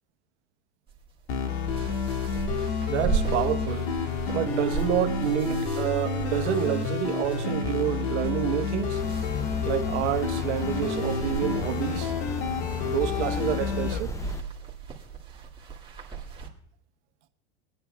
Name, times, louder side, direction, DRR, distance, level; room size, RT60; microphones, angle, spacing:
sound 1, 0.9-16.5, right 6 dB, 15° right, 2.0 m, -37 dB
sound 2, 1.3-14.0, left 5 dB, 70° left, 1.8 m, -29 dB
voice 1, 2.8-3.9 4.3-9.0 9.6-12.1 12.9-14.1, right 13 dB, 85° right, 1.1 m, -28 dB
sound 3, 8.9-14.4, left 3 dB, 10° left, 0.5 m, -38 dB
24.0 x 9.5 x 2.2 m
supercardioid pair, 125°, 33 cm